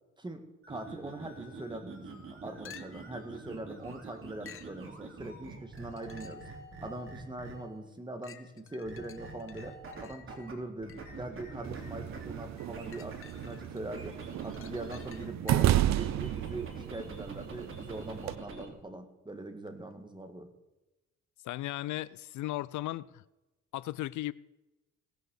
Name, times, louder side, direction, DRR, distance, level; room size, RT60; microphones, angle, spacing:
voice 1, 0.2-6.5 6.8-9.8 10.0-20.5, right 2 dB, 15° right, 2.0 m, -42 dB
sound 1, 0.6-7.8 8.8-10.5 10.8-15.3 15.6-18.7, right 3 dB, 45° right, 2.9 m, -46 dB
sound 2, 2.6-3.2 4.4-4.8 5.8-6.5 7.1-7.2 8.2-11.2 12.6-13.8 14.2-15.9 19.7-19.8, left 7 dB, 45° left, 1.0 m, -53 dB
sound 3, 11.6-18.3, right 13 dB, 65° right, 0.5 m, -32 dB
voice 2, 21.4-23.2 23.7-24.3, left 16 dB, 75° left, 0.4 m, -36 dB
18.0 x 6.6 x 6.5 m
cardioid pair, 90°, 30 cm